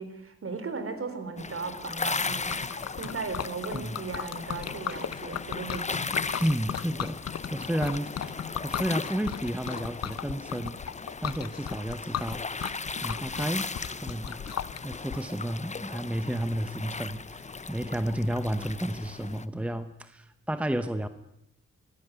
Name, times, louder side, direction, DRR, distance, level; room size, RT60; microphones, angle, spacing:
voice 1, 0.0-6.1, right 4 dB, 45° right, 9 dB, 4.2 m, -37 dB
sound 1, 1.4-19.4, left 4 dB, 25° left, 0.9 m, -37 dB
Liquid, 2.0-15.2, left 9 dB, 60° left, 0.9 m, -37 dB
voice 2, 6.4-7.2 7.5-10.8 11.2-13.7 14.0-14.4 14.8-21.1, right 1 dB, 5° right, 10 dB, 1.0 m, -32 dB
24.5 x 16.5 x 9.5 m, 0.83 s
wide cardioid pair, 115°, 29 cm